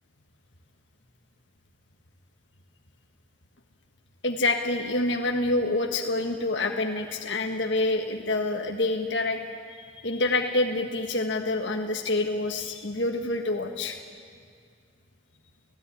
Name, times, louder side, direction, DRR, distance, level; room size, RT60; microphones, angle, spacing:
voice 1, 4.2-9.4 9.8-14.0, left 2 dB, 70° left, 3 dB, 1.6 m, -27 dB
29.5 x 17.0 x 9.9 m, 2.1 s
head